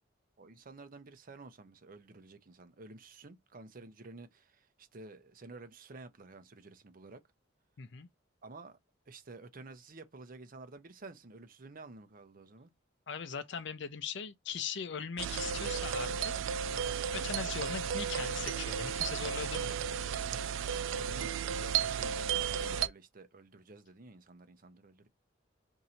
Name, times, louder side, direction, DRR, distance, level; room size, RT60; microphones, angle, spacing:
voice 1, 0.4-7.2 8.4-8.8 9.1-12.7 21.0-25.1, right 3 dB, 50° right, 0.7 m, -51 dB
voice 2, 7.8-8.1 13.1-16.3 17.1-19.8, left 6 dB, 65° left, 0.6 m, -40 dB
sound 1, 15.2-22.9, right 8 dB, 90° right, 0.4 m, -34 dB
2.7 x 2.6 x 4.3 m
head